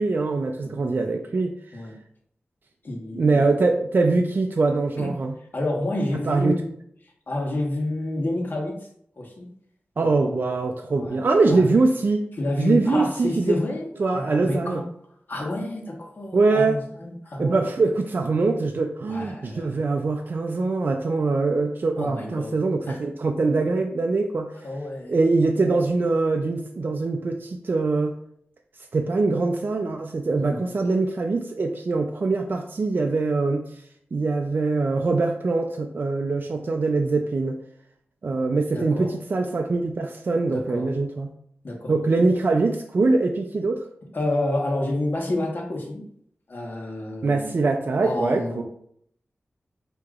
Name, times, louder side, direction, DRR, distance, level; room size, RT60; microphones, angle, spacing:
voice 1, 0.0-1.5 3.1-5.3 6.2-6.6 10.0-12.2 12.6-13.6 14.0-14.8 16.3-16.8 17.4-24.6 25.1-28.2 28.9-33.7 34.1-37.6 38.2-41.3 41.9-43.9 47.2-48.6, right 3 dB, 55° right, 4 dB, 0.4 m, -23 dB
voice 2, 2.8-3.4 5.0-5.1 5.5-6.8 7.3-8.8 9.2-9.5 10.0-10.4 10.9-11.2 11.5-11.7 12.4-14.8 15.3-17.7 19.0-19.8 22.0-23.0 24.6-25.1 30.3-30.7 38.7-39.1 40.5-40.8 41.6-42.0 44.1-46.1 46.5-47.5 48.0-48.6, left 1 dB, 55° left, -1 dB, 1.2 m, -29 dB
6.3 x 2.9 x 2.4 m, 0.66 s
wide cardioid pair, 65°, 4 cm